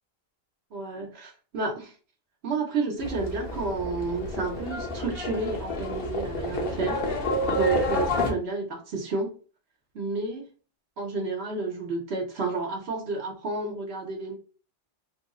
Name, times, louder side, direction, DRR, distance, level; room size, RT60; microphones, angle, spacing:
voice 1, 0.7-1.9 2.4-9.3 9.9-10.4 11.0-14.4, right 3 dB, 80° right, 1.2 m, -31 dB
Livestock farm animals working animals, 3.0-8.3, left 1 dB, 65° left, 1.0 m, -29 dB
3.3 x 2.0 x 3.7 m
omnidirectional pair, 1.1 m